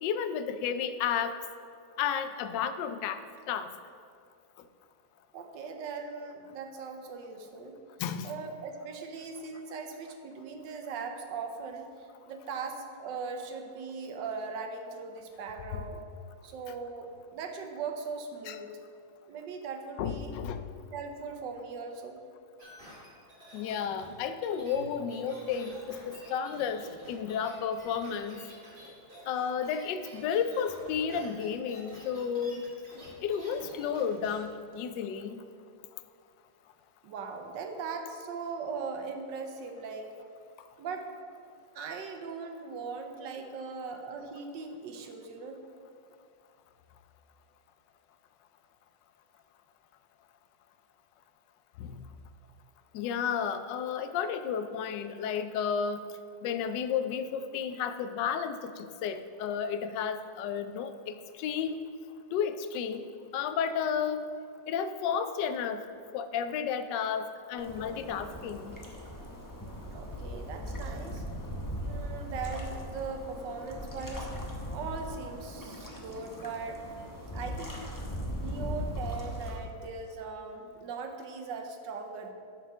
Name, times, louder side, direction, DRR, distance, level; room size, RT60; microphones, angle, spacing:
voice 1, 0.0-1.4 2.0-3.2 3.5-3.7 8.0-8.3 15.7-15.8 18.5-18.6 20.0-20.6 23.5-28.4 29.2-32.7 33.2-35.4 51.8-52.0 52.9-56.0 56.4-61.8 62.3-63.1 63.3-64.2 64.7-65.8 66.1-68.7, left 7 dB, 75° left, 10 dB, 1.2 m, -32 dB
voice 2, 5.3-7.8 8.2-11.8 12.3-16.0 16.4-18.7 19.3-20.3 20.9-22.2 37.0-40.1 40.8-41.1 41.7-45.6 69.8-71.2 71.9-74.3 74.7-76.8 77.3-77.8 78.4-82.3, right 5 dB, 75° right, 5 dB, 1.4 m, -39 dB
sound 1, 22.6-34.4 34.7-34.8, equal, 25° right, 2.2 m, -50 dB
sound 2, 67.6-79.5, equal, 15° left, 0.6 m, -39 dB
9.7 x 4.7 x 6.1 m, 2.3 s
omnidirectional pair, 2.0 m